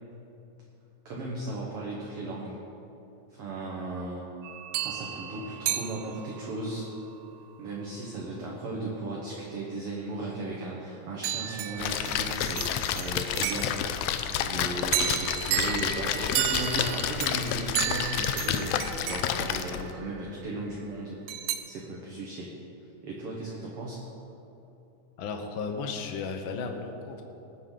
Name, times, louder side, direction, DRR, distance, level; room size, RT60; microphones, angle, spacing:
voice 1, 1.1-2.6 3.3-4.2 4.8-6.9 7.6-13.8 14.4-21.2 21.7-22.5 23.0-24.0, right 2 dB, 60° right, -3 dB, 2.0 m, -36 dB
sound 1, 4.4-6.6 11.2-14.1 14.9-20.3 21.3-21.6, right 11 dB, 75° right, 1.7 m, -33 dB
Splash splatter, 11.8-19.9, left 9 dB, 80° left, 1.5 m, -30 dB
voice 2, 25.2-27.2, left 4 dB, 65° left, 4 dB, 1.3 m, -34 dB
19.5 x 8.8 x 3.9 m, 3.0 s
omnidirectional pair, 3.4 m